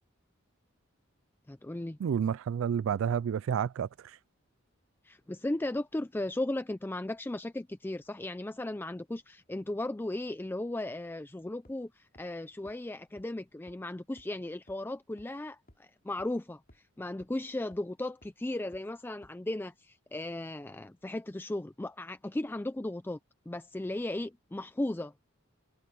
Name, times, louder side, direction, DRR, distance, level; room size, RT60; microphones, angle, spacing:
voice 1, 1.5-2.0 5.0-23.2 23.5-25.1, left 1 dB, 10° left, 0.4 m, -36 dB
voice 2, 2.0-4.2, right 8 dB, 70° right, 0.3 m, -30 dB
sound 1, 11.6-11.7 12.1-12.2 12.7-12.8 13.2-13.3 13.7-13.8 14.2-14.3 14.7-14.8 15.2-15.3 15.7-15.8 16.2-16.3 16.7-16.8 17.2-17.3 17.7-17.8 18.2-18.3 18.7-18.8 19.2-19.3, left 1 dB, 45° left, 3.5 m, -57 dB
head